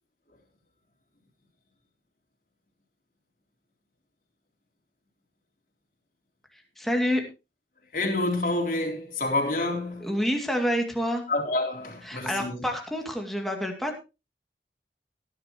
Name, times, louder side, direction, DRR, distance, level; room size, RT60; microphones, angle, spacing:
voice 1, 6.8-7.2 10.0-11.2 12.1-14.0, equal, ahead, 2.4 m, -27 dB
voice 2, 7.9-10.1 11.3-12.7, left 2 dB, 50° left, 3.8 m, -28 dB
18.0 x 10.5 x 3.0 m
head